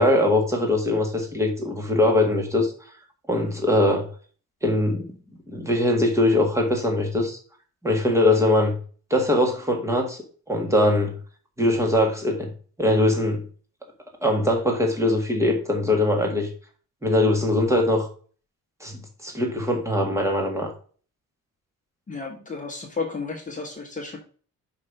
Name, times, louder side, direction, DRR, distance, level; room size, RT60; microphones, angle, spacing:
voice 1, 0.0-2.7 3.3-4.1 4.6-5.1 5.5-7.4 7.8-8.8 9.1-10.2 10.5-11.1 11.6-12.5 12.8-13.4 14.2-16.5 17.0-18.1 18.8-20.7, left 1 dB, 10° right, 2 dB, 1.7 m, -21 dB
voice 2, 22.1-24.2, left 4 dB, 25° left, 0 dB, 1.2 m, -32 dB
5.6 x 5.3 x 5.2 m, 0.41 s
wide cardioid pair, 170°, 32 cm